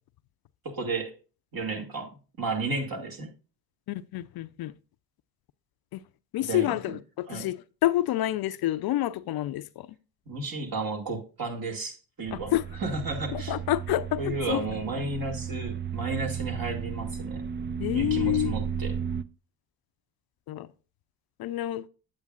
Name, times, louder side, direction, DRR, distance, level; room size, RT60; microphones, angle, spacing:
voice 1, 0.6-1.1 1.5-3.3 6.4-7.0 7.3-7.5 10.3-12.5 12.8-13.6 14.2-17.4 17.9-19.0, right 3 dB, 50° right, 2.3 m, -33 dB
voice 2, 3.9-4.7 5.9-6.0 6.3-9.9 12.3-12.6 13.3-14.6 17.8-18.5 20.5-20.7 21.4-21.9, left 14 dB, 55° left, 0.5 m, -28 dB
sound 1, 12.3-19.2, right 7 dB, 25° right, 0.4 m, -34 dB
8.5 x 7.8 x 2.4 m
hypercardioid pair, 50°, 46 cm